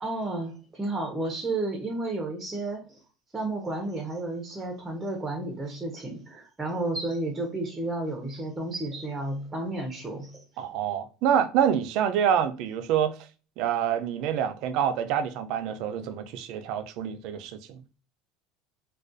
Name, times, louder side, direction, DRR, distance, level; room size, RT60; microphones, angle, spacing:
voice 1, 0.0-3.0 3.3-10.4, right 2 dB, 15° right, 0.5 m, -32 dB
voice 2, 10.6-13.1 13.6-17.8, right 9 dB, 65° right, 0.3 m, -26 dB
2.4 x 2.2 x 2.5 m
supercardioid pair, 130°, 0 cm